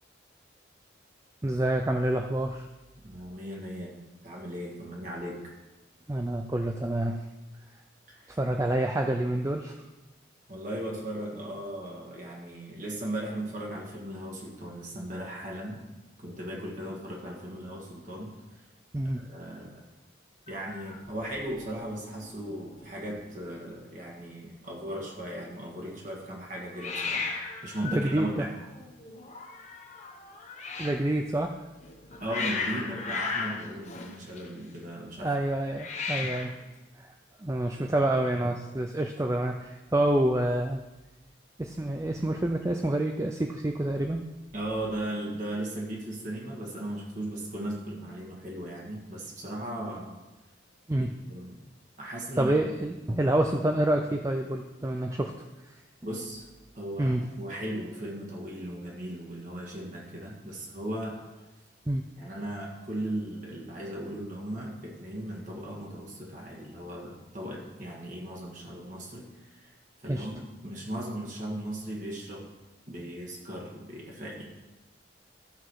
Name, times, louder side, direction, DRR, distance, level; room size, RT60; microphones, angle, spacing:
voice 1, 1.4-2.7 6.1-7.3 8.3-9.8 18.9-19.2 27.8-28.4 30.8-31.6 35.2-36.5 37.0-37.1 37.4-40.8 41.6-44.2 50.9-51.1 52.4-55.3 55.7-55.8 57.0-57.3 61.9-62.0 70.1-70.3, right 1 dB, 15° right, 4 dB, 0.4 m, -27 dB
voice 2, 3.0-3.9 4.2-5.5 8.1-8.4 10.5-15.8 16.2-18.3 19.1-19.9 20.5-27.3 27.6-28.6 32.2-35.3 44.5-50.2 51.0-51.6 52.0-52.6 56.0-56.4 56.8-61.2 62.2-69.7 70.0-72.5 72.9-74.4, right 1 dB, 40° right, -2 dB, 1.8 m, -37 dB
Hiss, 20.5-21.8 22.1-22.5 22.8-22.9 23.1-23.8 26.8-31.1 31.8-34.8 35.7-36.6, left 4 dB, 35° left, 1.0 m, -36 dB
13.5 x 6.2 x 4.8 m, 1.1 s
head